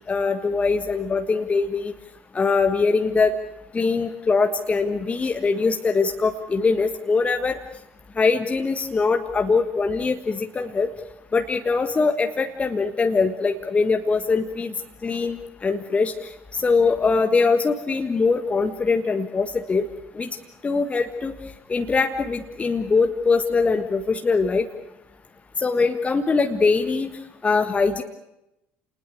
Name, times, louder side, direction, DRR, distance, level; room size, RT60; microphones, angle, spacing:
voice 1, 0.1-1.9 2.3-3.3 3.7-7.6 8.2-10.9 11.3-14.7 15.0-16.1 16.6-19.8 20.1-20.3 20.6-21.3 21.7-24.7 25.6-27.1 27.4-28.0, left 4 dB, 20° left, 6 dB, 1.5 m, -22 dB
29.5 x 20.0 x 8.1 m, 0.90 s
figure-of-eight pair, 65°, 6 cm